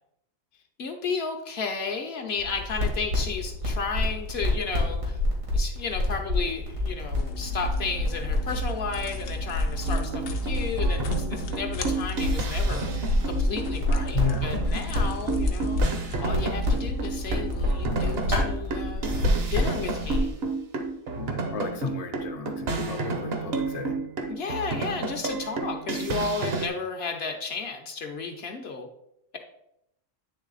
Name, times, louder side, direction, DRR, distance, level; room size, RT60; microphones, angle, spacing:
voice 1, 0.8-5.2 5.5-12.9 13.2-15.8 16.2-20.3 24.3-28.9, left 5 dB, 55° left, 4 dB, 0.9 m, -33 dB
sound 1, 2.4-20.3, left 1 dB, 85° right, 2.2 m, -28 dB
sound 2, 7.1-18.6, right 1 dB, 80° left, 1.1 m, -35 dB
sound 3, 9.8-26.7, right 3 dB, 55° right, 0.9 m, -31 dB
voice 2, 14.1-14.5 21.1-24.0, left 4 dB, 40° left, 3 dB, 0.6 m, -33 dB
8.9 x 3.4 x 3.9 m, 0.78 s
omnidirectional pair, 1.3 m